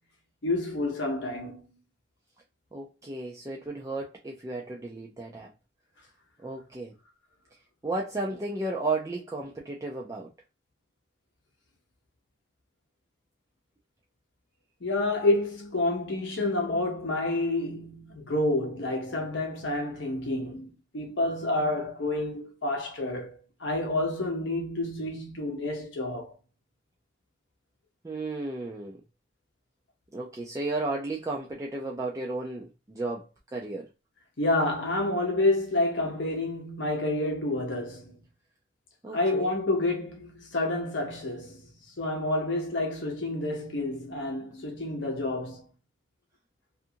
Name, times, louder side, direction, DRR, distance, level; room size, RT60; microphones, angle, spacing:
voice 1, 0.4-1.6 14.8-23.3 23.6-26.3 34.4-38.2 39.1-45.7, left 2 dB, 65° left, 0.8 m, -29 dB
voice 2, 2.7-5.5 6.4-6.9 7.8-10.3 28.0-29.0 30.1-33.9 39.0-39.5, right 2 dB, 15° right, 0.3 m, -34 dB
2.6 x 2.4 x 2.6 m
head